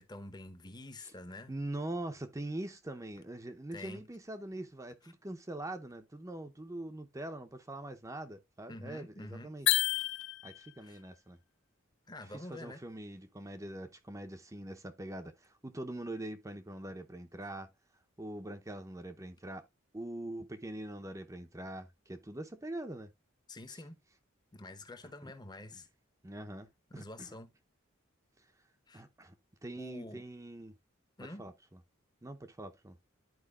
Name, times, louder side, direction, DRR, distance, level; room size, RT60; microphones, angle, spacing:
voice 1, 0.0-1.5 3.7-4.0 5.0-5.1 8.7-9.6 10.8-11.0 12.1-12.8 23.5-24.0 24.5-25.9 26.9-27.5 28.9-29.0 29.8-30.3 31.2-31.4, left 2 dB, 20° left, 0.8 m, -47 dB
voice 2, 1.5-9.7 10.4-11.4 12.5-17.7 18.2-19.6 19.9-23.1 25.2-25.3 26.2-27.3 28.9-29.3 29.6-30.7 31.4-31.5 32.2-33.0, right 1 dB, 15° right, 0.6 m, -43 dB
sound 1, 9.7-10.8, left 15 dB, 60° left, 0.4 m, -30 dB
12.0 x 4.6 x 2.3 m
head